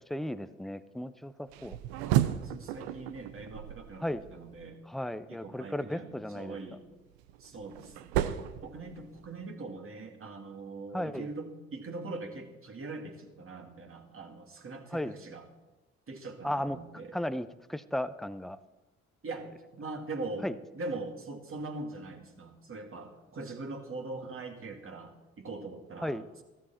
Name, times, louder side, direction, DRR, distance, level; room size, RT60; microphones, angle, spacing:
voice 1, 0.1-1.8 4.0-4.2 4.9-6.6 10.9-11.3 14.9-15.2 16.4-16.8 17.1-18.6 20.4-20.5 26.0-26.3, left 1 dB, ahead, 14 dB, 0.7 m, -35 dB
sound 1, 1.5-4.7 6.9-9.4, right 12 dB, 80° right, 0.7 m, -33 dB
voice 2, 2.4-4.0 4.3-4.8 5.3-6.8 7.4-8.0 8.6-15.5 16.1-17.1 19.2-20.5 20.7-26.4, right 3 dB, 40° right, 3 dB, 2.5 m, -42 dB
14.5 x 13.0 x 4.4 m, 1.1 s
hypercardioid pair, 45°, 32 cm